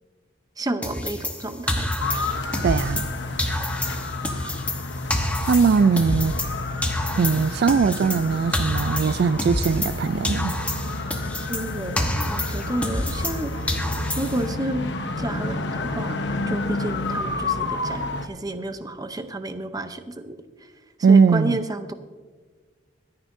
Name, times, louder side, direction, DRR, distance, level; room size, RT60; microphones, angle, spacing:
voice 1, 0.6-1.9 11.5-13.5 14.1-14.9 15.2-16.2 16.5-20.4 21.1-21.9, right 1 dB, 20° right, 0.7 m, -30 dB
sound 1, 0.8-3.1 3.4-6.6 6.8-10.0 10.2-13.4 13.7-14.5, left 1 dB, 10° left, 1.0 m, -28 dB
sound 2, 2.0-18.3, left 2 dB, 70° left, 1.0 m, -30 dB
voice 2, 2.6-3.1 5.5-6.3 7.2-10.5 21.0-21.6, right 5 dB, 55° right, 0.3 m, -20 dB
25.0 x 9.6 x 2.7 m
head